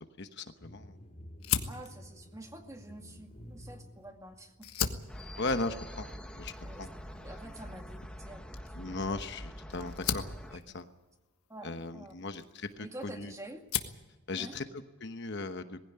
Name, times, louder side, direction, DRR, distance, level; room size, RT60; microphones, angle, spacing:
voice 1, 0.2-1.0 5.4-6.1 6.3-6.9 8.7-10.2 10.5-10.9 11.6-13.3 14.3-14.6 15.0-15.8, left 3 dB, 50° left, 8 dB, 1.0 m, -37 dB
sound 1, 0.6-5.2, equal, 30° left, 4.1 m, -52 dB
Fire, 1.4-4.0 4.5-13.1 13.5-14.1, left 8 dB, 75° left, 1.5 m, -39 dB
voice 2, 1.7-4.9 6.6-8.5 8.8-8.9 9.8-10.0 10.5-10.8 11.5-12.1 12.8-13.6 14.4-14.6, right 1 dB, 15° right, 4 dB, 2.1 m, -48 dB
sound 2, 5.1-10.6, equal, 5° left, 1.3 m, -45 dB
19.5 x 16.0 x 9.8 m, 1.1 s
head